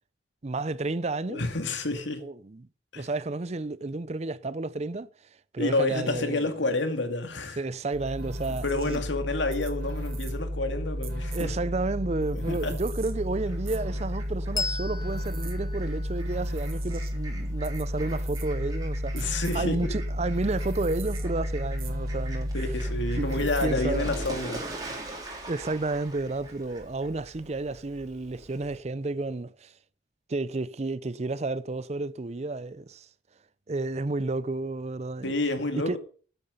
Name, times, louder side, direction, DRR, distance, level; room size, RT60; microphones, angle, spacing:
voice 1, 0.4-1.4 2.2-2.7 2.9-5.1 5.5-6.7 7.6-9.0 11.3-22.8 23.2-24.2 25.5-29.7 30.3-33.1 33.7-35.3 35.9-36.0, right 2 dB, 35° right, 0.5 m, -31 dB
voice 2, 1.3-2.2 2.9-3.1 5.6-7.6 8.6-11.5 12.3-12.8 19.1-20.0 22.5-24.6 35.2-36.0, left 2 dB, 85° left, 2.3 m, -29 dB
sound 1, 7.9-24.5, equal, 55° right, 2.1 m, -32 dB
Fowl, 12.5-28.8, right 1 dB, 20° right, 3.5 m, -44 dB
Bell, 14.5-17.6, left 4 dB, 20° left, 1.0 m, -37 dB
13.5 x 9.0 x 5.5 m
head